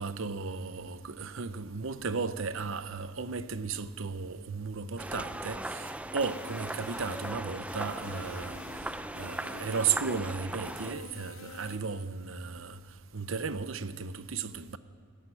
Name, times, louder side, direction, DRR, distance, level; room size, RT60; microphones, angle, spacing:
voice 1, 0.0-8.6 9.2-12.8 13.1-14.8, right 5 dB, 70° right, 0.8 m, -35 dB
sound 1, 5.0-10.9, right 1 dB, 5° right, 0.6 m, -39 dB
sound 2, 6.2-12.0, left 5 dB, 75° left, 0.8 m, -49 dB
18.5 x 14.5 x 9.9 m
head